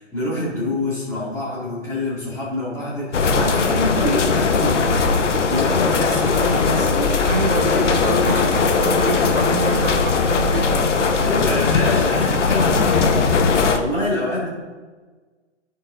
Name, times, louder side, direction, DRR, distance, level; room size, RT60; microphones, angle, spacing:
voice 1, 0.0-5.1 5.5-7.1 7.7-7.9 11.2-14.5, left 1 dB, 10° left, -9 dB, 2.1 m, -26 dB
sound 1, 3.1-13.8, left 4 dB, 75° left, 0.9 m, -19 dB
voice 2, 7.3-11.3, right 5 dB, 45° right, 4 dB, 0.6 m, -27 dB
10.5 x 4.8 x 3.7 m, 1.4 s
hypercardioid pair, 160°, 37 cm